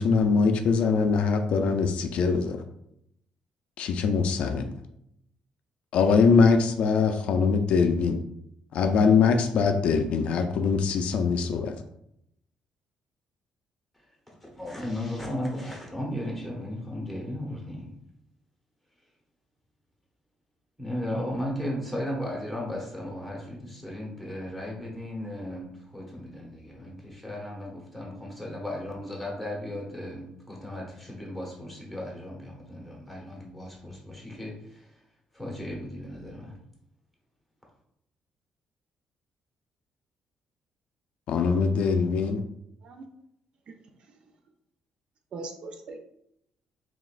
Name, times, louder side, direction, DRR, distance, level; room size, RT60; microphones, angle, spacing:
voice 1, 0.0-2.6 3.8-4.7 5.9-8.2 8.7-11.8 41.3-42.4, left 5 dB, 60° left, 6 dB, 0.4 m, -22 dB
voice 2, 14.4-17.9 20.8-34.9 35.3-36.6, left 1 dB, ahead, -3 dB, 1.0 m, -35 dB
voice 3, 45.3-46.0, right 3 dB, 45° right, 5 dB, 0.4 m, -41 dB
4.9 x 3.4 x 2.4 m, 0.77 s
cardioid pair, 180°, 2 cm